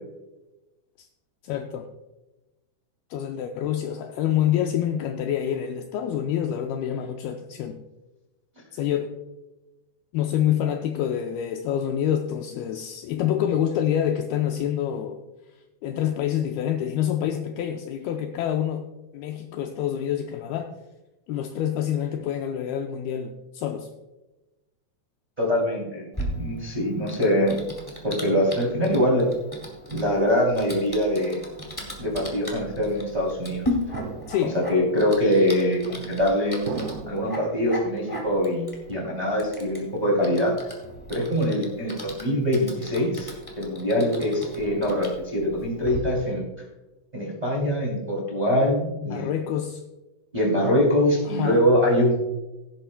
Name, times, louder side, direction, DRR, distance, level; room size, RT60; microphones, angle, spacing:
voice 1, 1.4-1.9 3.1-7.8 8.7-9.1 10.1-15.2 15.8-18.9 19.1-20.7 21.3-23.9 34.3-34.6 49.0-49.8 51.3-51.6, left 10 dB, 85° left, 5 dB, 2.2 m, -27 dB
voice 2, 25.4-26.1 26.3-27.6 28.0-29.3 29.9-31.4 32.0-33.7 34.5-36.6 37.1-40.5 41.1-46.4 47.1-49.3 50.3-52.2, equal, 15° right, -3 dB, 1.9 m, -23 dB
Typing, 26.1-46.0, left 1 dB, 35° left, 0.3 m, -38 dB
sound 1, 33.9-34.8 35.6-36.2 36.7-37.5 38.0-38.6 38.9-39.7 40.0-40.4 40.8-41.4, right 4 dB, 70° right, 1.7 m, -38 dB
16.5 x 10.5 x 2.2 m, 1.1 s
omnidirectional pair, 5.0 m